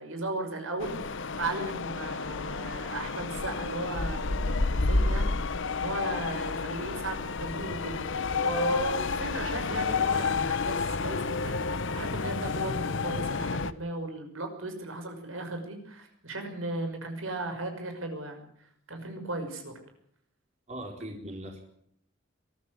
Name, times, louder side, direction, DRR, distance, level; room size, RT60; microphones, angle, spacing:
voice 1, 0.0-18.5 18.9-19.7, right 2 dB, 80° right, 5 dB, 5.8 m, -36 dB
sound 1, 0.8-13.7, left 4 dB, 65° left, 0.9 m, -30 dB
voice 2, 20.7-21.6, right 1 dB, 35° right, 2 dB, 4.1 m, -39 dB
23.5 x 14.0 x 9.7 m, 0.69 s
head